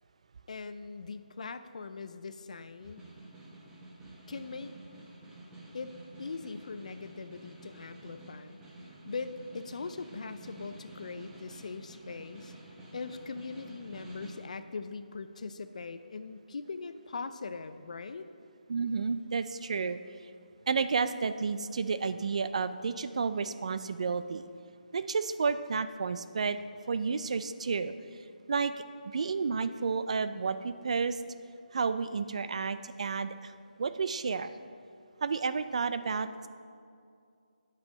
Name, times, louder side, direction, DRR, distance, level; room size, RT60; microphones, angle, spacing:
voice 1, 0.5-3.1 4.3-4.7 5.7-5.9 6.2-8.6 9.0-12.5 12.9-18.3, left 4 dB, 50° left, 11 dB, 0.4 m, -41 dB
Snare drum, 2.6-14.5, right 2 dB, 10° right, 0.9 m, -50 dB
voice 2, 18.7-20.0 20.7-24.4 24.9-26.6 26.9-27.9 28.5-28.7 29.0-31.2 31.7-33.5 33.8-34.5 35.2-36.5, right 5 dB, 45° right, 13 dB, 0.4 m, -31 dB
8.9 x 5.5 x 5.0 m, 2.4 s
figure-of-eight pair, 165°, 5 cm